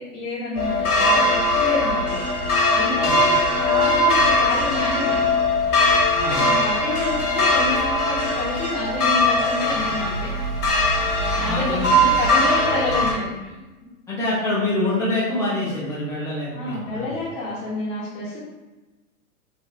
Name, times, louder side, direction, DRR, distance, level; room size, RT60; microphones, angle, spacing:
voice 1, 0.0-5.2 6.3-10.3 11.3-13.5 16.5-18.4, left 2 dB, 40° left, -8 dB, 0.8 m, -29 dB
sound 1, 0.6-13.1, left 1 dB, 80° left, 1.1 m, -20 dB
voice 2, 6.1-6.5 11.4-11.9 14.1-17.1, left 2 dB, 5° left, -8 dB, 0.6 m, -25 dB
3.0 x 2.4 x 2.7 m, 1.1 s
hypercardioid pair, 120°, 45 cm